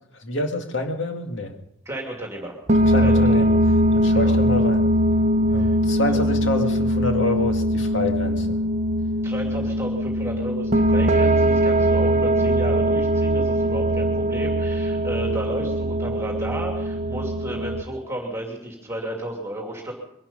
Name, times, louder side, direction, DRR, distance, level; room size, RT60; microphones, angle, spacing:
voice 1, 0.1-1.5 2.7-3.5 3.9-4.8 5.5-8.6 9.6-9.7, left 2 dB, 70° left, 4 dB, 2.1 m, -27 dB
voice 2, 1.9-2.6 3.0-3.6 4.1-4.4 5.5-5.8 6.1-6.2 9.2-19.9, right 1 dB, 15° right, 0 dB, 2.6 m, -33 dB
sound 1, 2.7-17.8, equal, 35° right, 0.7 m, -21 dB
23.0 x 11.5 x 5.3 m, 0.80 s
head